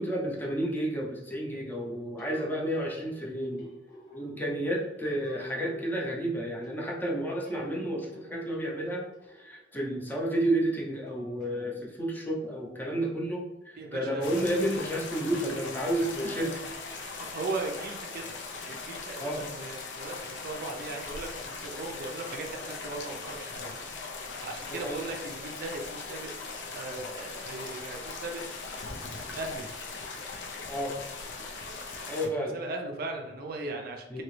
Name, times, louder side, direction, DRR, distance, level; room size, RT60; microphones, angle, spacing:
voice 1, 0.0-3.7 4.1-9.0 9.4-16.5 19.2-19.4 24.7-25.0 30.7-31.0 32.1-32.5 34.1-34.2, right 1 dB, 10° left, -3 dB, 0.6 m, -31 dB
sound 1, 1.7-11.5, left 1 dB, 60° left, 1.3 m, -51 dB
voice 2, 13.8-14.6 16.0-16.6 17.0-18.3 18.6-23.8 24.4-26.3 26.7-28.4 29.3-29.7 32.3-34.2, right 2 dB, 55° right, 3 dB, 0.5 m, -38 dB
sound 2, 14.2-32.3, left 4 dB, 85° left, 0.5 m, -40 dB
2.9 x 2.8 x 3.1 m, 1.0 s
head